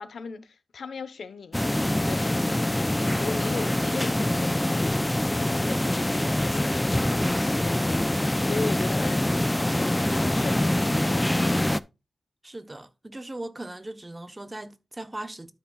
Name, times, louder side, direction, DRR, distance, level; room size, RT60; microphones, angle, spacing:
voice 1, 0.0-4.9 5.3-11.3, left 4 dB, 80° left, 1.0 m, -38 dB
sound 1, 1.5-11.8, left 1 dB, 15° left, 0.5 m, -25 dB
voice 2, 12.4-15.5, right 1 dB, 25° right, 1.0 m, -38 dB
12.5 x 6.1 x 2.4 m
cardioid pair, 65°, 0 cm